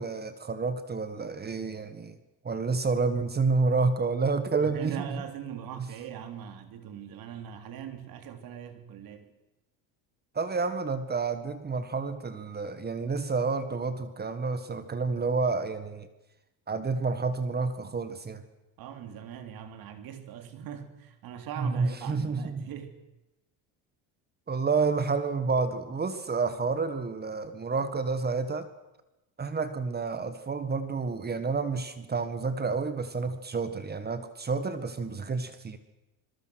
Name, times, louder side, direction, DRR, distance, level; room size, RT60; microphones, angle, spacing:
voice 1, 0.0-2.2 2.4-5.2 10.3-16.1 16.7-18.4 21.6-22.6 24.5-28.7 29.4-35.8, right 4 dB, 25° right, 11 dB, 1.7 m, -29 dB
voice 2, 4.6-9.3 18.8-23.0, right 9 dB, 55° right, 8 dB, 3.3 m, -41 dB
26.5 x 22.0 x 6.4 m, 0.94 s
supercardioid pair, 110°, 42 cm